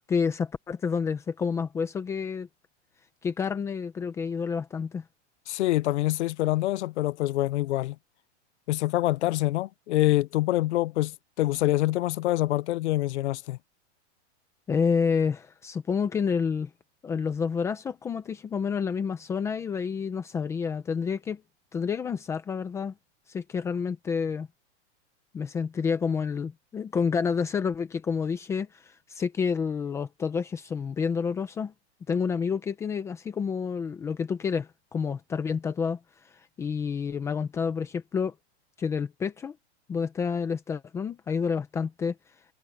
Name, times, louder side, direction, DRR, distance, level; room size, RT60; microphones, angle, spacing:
voice 1, 0.1-2.5 3.2-5.0 14.7-16.7 17.0-21.4 21.7-22.9 23.3-24.5 25.3-31.7 32.1-36.0 36.6-38.3 38.8-39.5 39.9-42.1, left 6 dB, 10° left, 0.8 m, -29 dB
voice 2, 5.5-8.0 8.7-13.6, left 16 dB, 75° left, 0.6 m, -26 dB
supercardioid pair, 175°, 35 cm